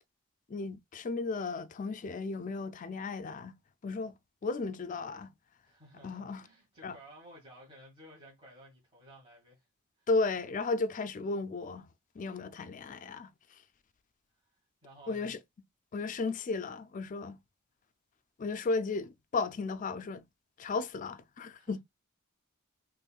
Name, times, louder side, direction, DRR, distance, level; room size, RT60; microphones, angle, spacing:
voice 1, 0.5-3.5 3.8-4.1 4.4-5.3 6.0-6.4 6.8-7.0 10.1-11.9 12.2-13.3 15.1-15.4 15.9-17.4 18.4-20.2 20.6-21.8, left 3 dB, 40° left, 0.4 m, -34 dB
voice 2, 5.6-9.6 10.0-10.1 14.8-15.3 21.6-21.8, equal, 25° right, 1.9 m, -55 dB
5.3 x 3.0 x 2.3 m
head